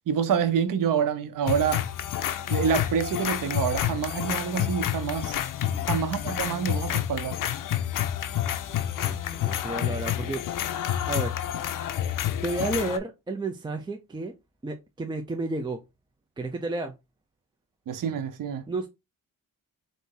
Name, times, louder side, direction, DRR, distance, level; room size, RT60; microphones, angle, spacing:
voice 1, 0.1-1.8 2.5-5.4 5.9-7.4 17.9-18.6, right 7 dB, 70° right, 0.7 m, -27 dB
sound 1, 1.5-13.0, left 11 dB, 70° left, 0.5 m, -29 dB
voice 2, 9.0-10.6 11.1-11.3 12.4-14.3 14.6-15.8 16.4-16.9 18.7-18.9, right 2 dB, 15° right, 0.4 m, -32 dB
4.0 x 2.6 x 3.7 m
wide cardioid pair, 125°, 34 cm